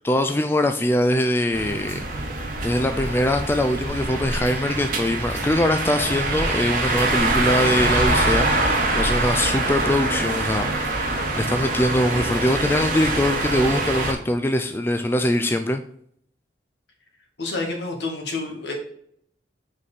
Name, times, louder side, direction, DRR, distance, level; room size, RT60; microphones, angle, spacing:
voice 1, 0.0-2.0 2.6-15.8, left 1 dB, 15° left, 7 dB, 0.3 m, -22 dB
sound 1, 1.5-14.1, right 2 dB, 50° right, 1.4 m, -24 dB
voice 2, 17.4-18.7, left 3 dB, 75° left, 1 dB, 1.8 m, -29 dB
4.9 x 4.3 x 5.5 m, 0.65 s
head